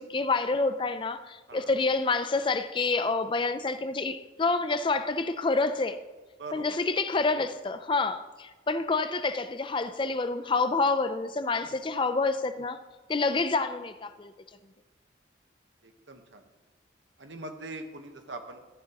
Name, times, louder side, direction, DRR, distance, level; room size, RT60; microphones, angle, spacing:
voice 1, 0.0-6.0 6.5-12.8 13.1-14.3, left 3 dB, 25° left, 0.4 m, -28 dB
voice 2, 6.4-6.8 7.1-7.2 11.6-11.9 15.8-16.5 17.2-18.6, right 2 dB, 80° right, 1.2 m, -42 dB
13.5 x 10.5 x 2.9 m
head